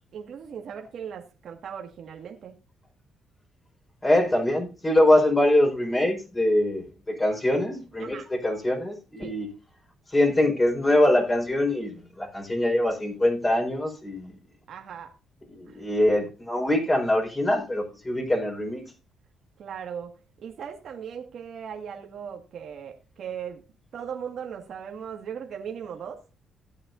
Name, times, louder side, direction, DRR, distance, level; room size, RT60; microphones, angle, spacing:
voice 1, 0.1-2.6 8.0-8.3 9.2-9.4 14.7-15.1 15.7-15.9 19.6-20.1 20.4-23.6 23.9-26.2, right 7 dB, 65° right, 1.9 m, -38 dB
voice 2, 4.0-9.5 10.1-14.3 15.5-18.8, left 1 dB, 20° left, 4.8 m, -23 dB
17.0 x 8.5 x 2.6 m
cardioid pair, 90°, 0 cm